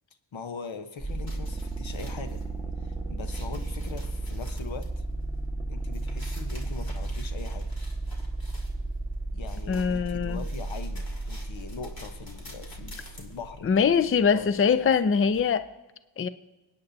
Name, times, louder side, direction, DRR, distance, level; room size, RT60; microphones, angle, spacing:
voice 1, 0.3-2.4 2.8-5.0 5.7-7.7 9.3-14.5 14.8-14.9, left 5 dB, 75° left, 8 dB, 1.1 m, -41 dB
sound 1, 1.0-13.7, right 2 dB, 10° left, 1.5 m, -34 dB
sound 2, 1.1-15.4, left 3 dB, 50° left, 2.4 m, -50 dB
voice 2, 9.7-10.4 13.6-15.7 16.2-16.3, left 6 dB, 30° left, 13 dB, 0.5 m, -23 dB
25.0 x 9.4 x 2.7 m, 1.1 s
cardioid pair, 65°, 46 cm